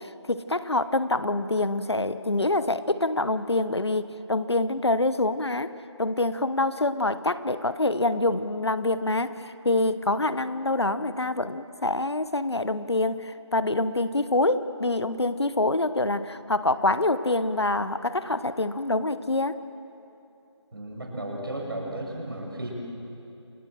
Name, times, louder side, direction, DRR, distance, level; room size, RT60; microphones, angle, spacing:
voice 1, 0.0-5.7 6.0-19.6, left 2 dB, 60° left, 13 dB, 1.1 m, -26 dB
voice 2, 20.7-22.7, right 1 dB, 50° right, 0 dB, 6.2 m, -34 dB
29.0 x 20.0 x 7.6 m, 2.9 s
figure-of-eight pair, 165°, 15 cm